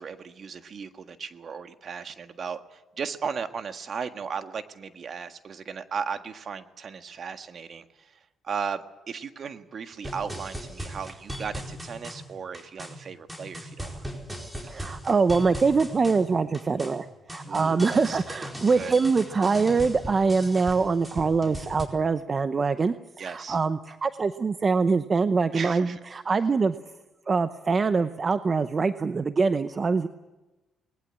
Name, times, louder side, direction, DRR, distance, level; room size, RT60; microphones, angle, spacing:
voice 1, 0.0-8.2 8.4-14.1 17.4-18.2 18.7-18.9 23.2-23.6 25.5-26.0, right 6 dB, 50° right, 8 dB, 1.6 m, -36 dB
sound 1, 10.0-21.8, equal, 10° right, 4.5 m, -38 dB
voice 2, 14.6-26.8 27.3-30.1, right 4 dB, 35° right, 11 dB, 0.8 m, -24 dB
20.5 x 19.5 x 8.7 m, 1.1 s
cardioid pair, 90°, 0 cm